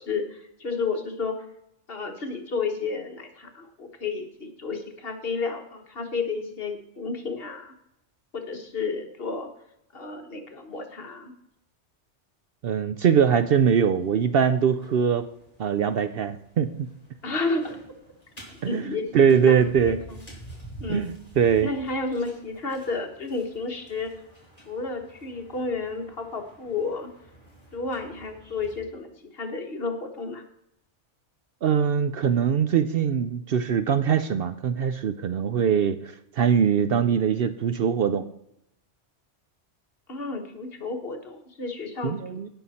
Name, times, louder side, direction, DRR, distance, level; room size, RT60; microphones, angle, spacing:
voice 1, 0.0-1.4 1.9-7.7 8.3-9.5 9.9-11.3 17.2-17.8 18.6-20.2 20.8-21.1 21.6-24.1 24.6-27.1 27.7-30.4 40.1-42.1, left 4 dB, 55° left, 4 dB, 1.5 m, -31 dB
voice 2, 12.6-15.3 15.6-16.9 18.6-20.0 20.9-21.7 31.6-36.0 36.3-38.3 42.0-42.5, right 7 dB, 60° right, 10 dB, 0.7 m, -22 dB
sound 1, 13.3-28.8, right 1 dB, 30° left, 3.2 m, -48 dB
17.0 x 5.8 x 4.2 m, 0.77 s
omnidirectional pair, 1.2 m